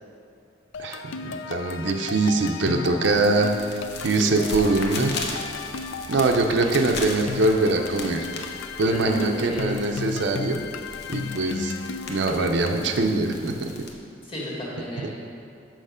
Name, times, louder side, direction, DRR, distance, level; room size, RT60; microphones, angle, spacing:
sound 1, 0.7-13.1, left 4 dB, 80° left, 0.4 m, -35 dB
voice 1, 0.8-5.1 6.1-8.3 8.8-10.6 11.1-11.7 12.1-13.7, right 2 dB, 60° right, 4 dB, 0.5 m, -23 dB
sound 2, 3.0-13.9, left 3 dB, 55° left, 0.8 m, -38 dB
voice 2, 8.8-9.7 14.3-15.1, equal, 25° left, -5 dB, 1.7 m, -33 dB
6.5 x 6.3 x 5.0 m, 2.5 s
head